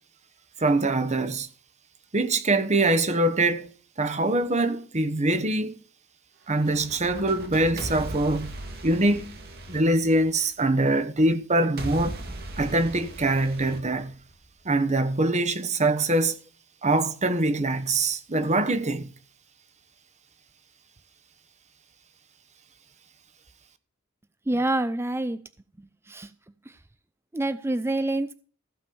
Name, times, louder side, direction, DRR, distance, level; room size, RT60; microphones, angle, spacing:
voice 1, 0.6-1.5 2.1-3.7 4.0-5.8 6.5-8.5 8.8-9.3 9.7-12.2 12.6-14.1 14.6-16.3 16.8-19.1, right 2 dB, 35° right, 1.1 m, -23 dB
sound 1, 6.5-10.6 11.8-14.6, right 1 dB, 50° right, 2.0 m, -38 dB
voice 2, 24.5-25.4 26.1-26.3 27.3-28.3, right 2 dB, 10° right, 0.5 m, -26 dB
15.0 x 5.3 x 7.0 m
head